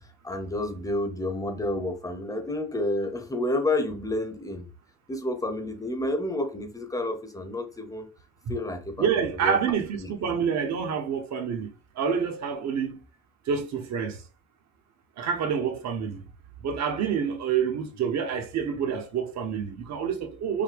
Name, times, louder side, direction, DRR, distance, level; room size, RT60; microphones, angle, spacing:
voice 1, 0.2-4.7 5.1-8.1 8.5-9.6 10.0-10.1, left 1 dB, 10° left, 0.9 m, -30 dB
voice 2, 9.0-11.7 12.0-13.0 13.5-14.2 15.2-16.2 16.6-20.6, right 7 dB, 50° right, 1.2 m, -27 dB
5.6 x 2.2 x 3.5 m
cardioid pair, 105°, 34 cm